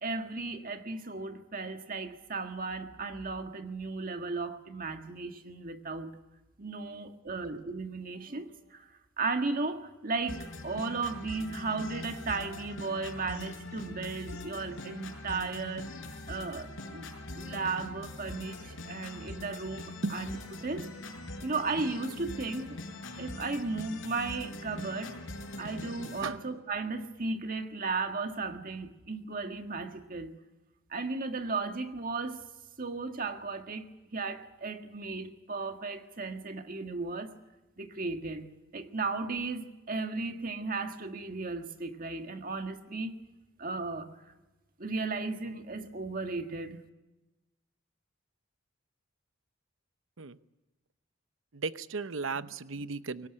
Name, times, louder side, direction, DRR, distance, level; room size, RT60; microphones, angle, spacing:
voice 1, 0.0-6.1 6.6-8.9 9.2-15.9 16.3-17.1 17.3-20.4 20.6-20.9 21.4-22.8 23.2-25.2 25.6-30.3 30.9-32.4 32.8-37.3 37.8-38.5 38.7-43.1 43.6-44.2 44.8-46.8, right 3 dB, 45° right, 1.7 m, -35 dB
sound 1, 10.3-26.3, left 2 dB, 65° left, 5.6 m, -42 dB
voice 2, 51.5-53.3, right 4 dB, 70° right, 0.9 m, -35 dB
24.0 x 18.0 x 9.9 m
head